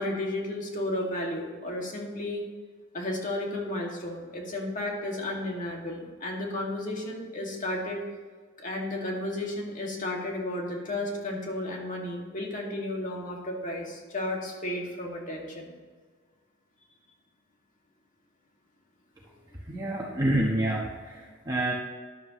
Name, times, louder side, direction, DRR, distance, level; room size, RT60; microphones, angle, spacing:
voice 1, 0.0-2.4 2.9-8.0 8.6-15.7, left 1 dB, 40° left, -1 dB, 2.1 m, -33 dB
voice 2, 19.7-21.7, right 1 dB, 20° right, -4 dB, 1.1 m, -28 dB
13.5 x 11.0 x 3.1 m, 1.5 s
head